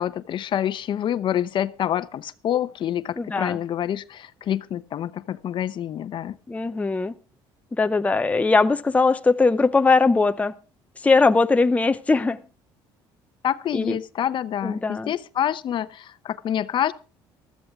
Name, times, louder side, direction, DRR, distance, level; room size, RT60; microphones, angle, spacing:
voice 1, 0.0-6.3 13.4-16.9, left 10 dB, 55° left, 0.8 m, -27 dB
voice 2, 3.2-3.6 6.5-7.1 7.8-10.5 11.0-12.4 13.7-14.0 14.6-15.1, left 3 dB, 15° left, 0.6 m, -20 dB
15.5 x 13.5 x 3.5 m
cardioid pair, 95°, 10 cm